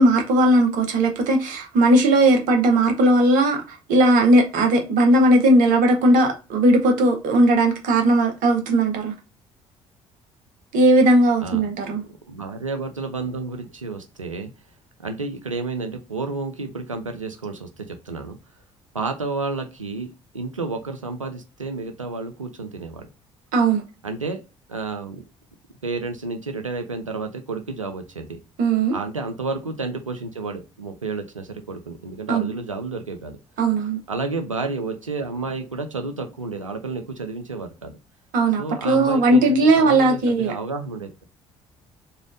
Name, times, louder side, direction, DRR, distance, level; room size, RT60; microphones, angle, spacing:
voice 1, 0.0-3.6 3.9-9.1 10.7-12.0 23.5-23.8 28.6-29.0 32.3-32.5 33.6-34.0 38.3-40.5, right 1 dB, 55° right, 0.9 m, -17 dB
voice 2, 11.9-14.5 15.0-18.4 18.9-23.1 24.0-24.4 24.7-25.2 25.8-28.4 28.9-33.4 34.1-38.0 38.6-41.1, right 3 dB, 90° right, 0.4 m, -31 dB
3.2 x 2.3 x 2.4 m
figure-of-eight pair, 50°, 16 cm